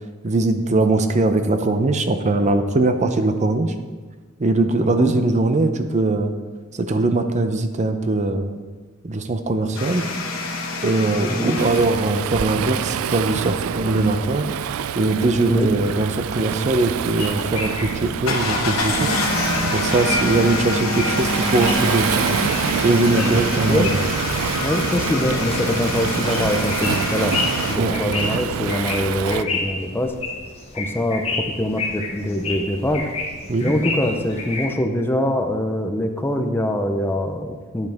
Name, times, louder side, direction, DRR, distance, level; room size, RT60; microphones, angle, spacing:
voice 1, 0.2-3.7 4.4-6.3 6.7-8.6 9.0-10.1 10.8-14.5 14.9-19.1 19.7-22.3 22.8-24.0 27.7-28.0 33.5-33.7, right 2 dB, 35° right, 8 dB, 0.6 m, -21 dB
voice 2, 4.8-5.1 11.3-11.6 15.5-15.7 23.7-23.9 24.6-27.4 27.7-30.2 30.7-33.1 33.6-37.9, left 1 dB, 10° left, 5 dB, 0.6 m, -23 dB
sound 1, 9.7-12.1 18.2-27.8, left 3 dB, 75° left, 1.2 m, -26 dB
Waves surf, 11.6-29.4, right 8 dB, 75° right, 0.3 m, -26 dB
sound 2, 17.2-34.7, left 3 dB, 30° left, 1.3 m, -32 dB
9.2 x 7.9 x 3.5 m, 1.4 s
head